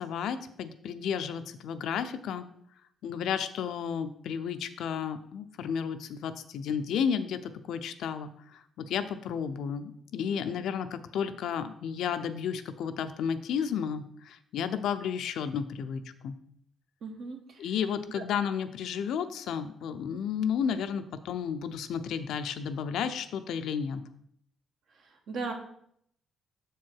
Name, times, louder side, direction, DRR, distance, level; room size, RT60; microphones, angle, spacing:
voice 1, 0.0-2.4 3.0-16.3 17.6-24.0, left 7 dB, 80° left, 10 dB, 0.5 m, -32 dB
voice 2, 10.3-10.6 17.0-17.7 18.1-18.2 24.9-25.5, right 4 dB, 65° right, 3 dB, 1.4 m, -39 dB
6.7 x 4.6 x 4.6 m, 0.69 s
cardioid pair, 90°, 0 cm